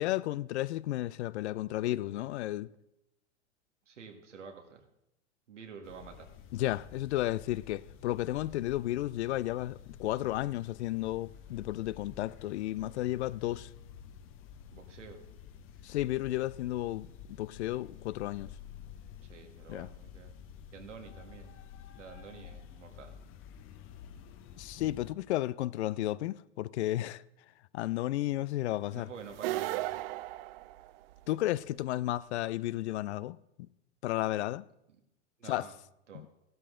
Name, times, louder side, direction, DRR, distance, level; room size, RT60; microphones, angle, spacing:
voice 1, 0.0-2.7 6.5-13.7 15.8-18.5 19.7-19.9 24.6-27.2 27.7-29.1 31.3-33.4 34.0-34.6 35.4-35.7 36.1-36.3, left 15 dB, 70° left, 0.5 m, -33 dB
voice 2, 3.9-4.8 5.5-6.3 14.7-15.2 19.2-20.4 20.7-21.6 22.0-23.1 28.9-30.0 35.4-35.7 36.1-36.2, right 6 dB, 85° right, 1.9 m, -49 dB
sound 1, 5.8-25.1, left 8 dB, 35° left, 0.9 m, -51 dB
sound 2, 29.3-31.3, right 16 dB, 55° right, 0.5 m, -35 dB
14.5 x 12.0 x 3.8 m
hypercardioid pair, 100°, 35 cm